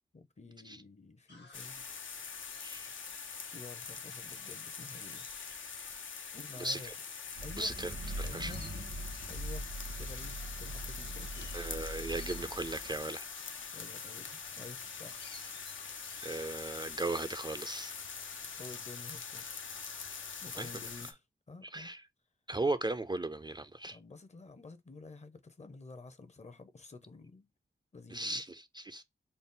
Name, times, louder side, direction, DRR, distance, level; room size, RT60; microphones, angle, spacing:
voice 1, 0.1-1.9 3.5-5.3 6.3-6.9 7.4-7.7 8.2-8.6 9.3-9.7 10.0-11.5 13.7-15.2 15.5-15.6 18.6-19.6 20.4-21.2 21.5-21.9 23.9-27.5 27.9-28.4, left 3 dB, 35° left, 0.6 m, -50 dB
sound 1, 1.3-18.3, left 3 dB, 60° left, 1.1 m, -60 dB
sound 2, 1.5-21.1, left 6 dB, 85° left, 0.6 m, -44 dB
voice 2, 6.6-6.9 7.6-7.9 8.2-8.5 11.5-13.2 15.6-15.7 16.2-17.9 20.6-20.7 21.6-22.0 22.5-24.0 28.1-29.0, right 2 dB, 25° right, 0.3 m, -37 dB
sound 3, 7.3-13.0, right 1 dB, 85° right, 1.5 m, -42 dB
4.0 x 2.0 x 3.6 m
wide cardioid pair, 80°, 20 cm